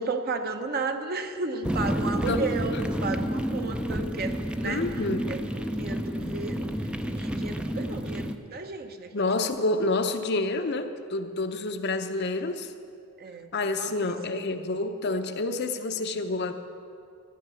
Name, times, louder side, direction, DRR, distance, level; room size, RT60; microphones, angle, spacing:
voice 1, 0.0-4.9 5.3-5.4 5.8-6.7 7.1-9.3 13.2-13.5 13.8-14.5, right 3 dB, 45° right, 6 dB, 0.9 m, -33 dB
sound 1, 1.6-8.4, equal, 5° right, 0.5 m, -30 dB
voice 2, 4.6-5.3 9.1-12.7 13.5-16.5, left 2 dB, 50° left, 7 dB, 0.7 m, -28 dB
13.0 x 10.0 x 7.0 m, 2.4 s
head